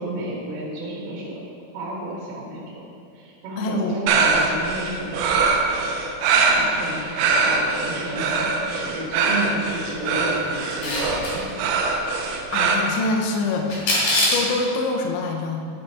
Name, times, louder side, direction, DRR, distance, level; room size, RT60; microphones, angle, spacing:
voice 1, 0.0-1.4 1.7-2.8 3.1-5.5 6.4-11.5, right 1 dB, 65° right, -5 dB, 3.0 m, -32 dB
voice 2, 3.6-4.0 12.5-13.7 14.3-15.6, left 3 dB, 80° left, 2 dB, 2.8 m, -25 dB
sound 1, 4.1-12.8, right 4 dB, 85° right, 2.8 m, -22 dB
Camera, 10.6-11.3 13.7-14.5, left 1 dB, 50° left, 2.7 m, -22 dB
10.5 x 5.1 x 4.5 m, 2.3 s
omnidirectional pair, 5.9 m